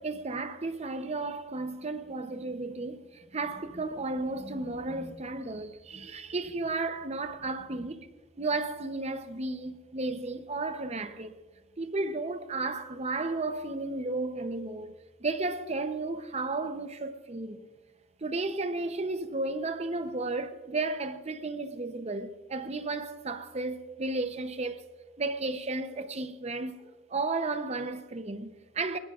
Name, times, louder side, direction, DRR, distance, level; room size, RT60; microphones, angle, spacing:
voice 1, 0.0-8.1 8.4-11.4 11.8-14.9 15.2-17.6 18.2-24.8 25.2-29.0, right 3 dB, 30° right, 0.7 m, -33 dB
23.5 x 20.5 x 2.4 m
head